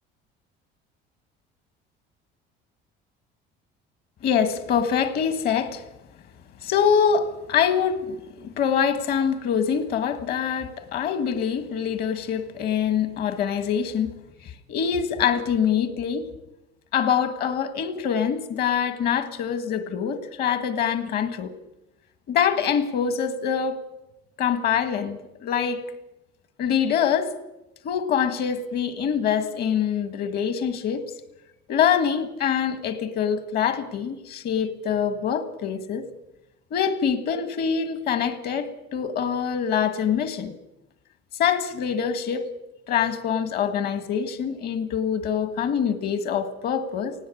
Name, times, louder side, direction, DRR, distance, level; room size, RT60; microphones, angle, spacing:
voice 1, 4.2-5.9 6.6-14.1 14.4-16.3 16.9-21.5 22.3-23.8 24.4-25.8 26.6-27.3 27.8-31.0 31.7-36.0 36.7-40.5 41.4-42.5 42.9-47.1, left 7 dB, 50° left, 1.6 m, -24 dB
18.5 x 16.5 x 8.4 m
cardioid pair, 165°, 20 cm